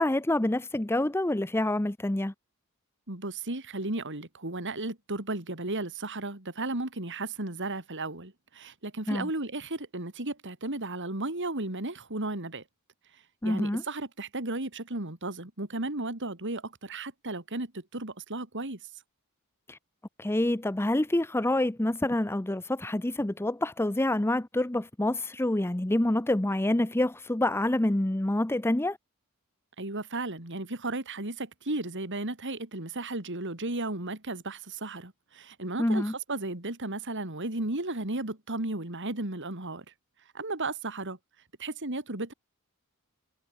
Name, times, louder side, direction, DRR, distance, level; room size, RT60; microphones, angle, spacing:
voice 1, 0.0-2.3 9.1-9.3 13.4-13.8 19.7-19.8 20.2-29.0 35.8-36.1, left 1 dB, 10° left, 0.6 m, -27 dB
voice 2, 3.1-12.6 13.1-18.8 29.8-39.9 40.3-41.2 41.6-42.3, right 2 dB, 55° right, 3.6 m, -34 dB
head